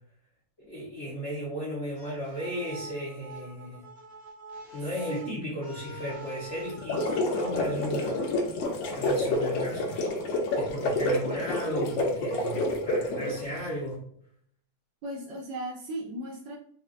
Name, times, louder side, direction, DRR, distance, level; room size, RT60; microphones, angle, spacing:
voice 1, 0.7-3.8 4.7-8.2 8.9-10.1 10.5-14.0, equal, 50° left, -6 dB, 0.8 m, -35 dB
sound 1, 1.9-8.6, right 1 dB, 45° right, 0.9 m, -45 dB
voice 2, 5.1-5.7 15.0-16.6, right 1 dB, 70° right, 0 dB, 1.2 m, -36 dB
sound 2, 6.7-13.5, left 1 dB, 70° left, 1.3 m, -28 dB
4.3 x 2.7 x 2.4 m, 0.63 s
omnidirectional pair, 2.4 m